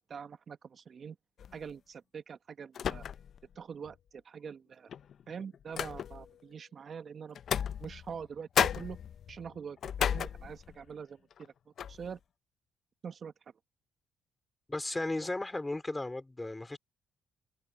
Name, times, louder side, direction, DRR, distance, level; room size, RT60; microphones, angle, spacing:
voice 1, 0.1-1.2 1.5-3.0 3.5-4.9 5.3-7.4 7.8-9.0 9.3-11.5 11.8-12.2 13.0-13.3, right 6 dB, 50° right, 1.3 m, -44 dB
sound 1, 1.4-1.7 2.7-3.5 3.8-3.9 4.9-6.4 7.4-8.3 8.6-10.9 11.3-11.5 11.8-12.1, left 8 dB, 60° left, 0.8 m, -34 dB
voice 2, 14.7-16.8, left 2 dB, 15° left, 4.5 m, -35 dB
supercardioid pair, 65°, 0 cm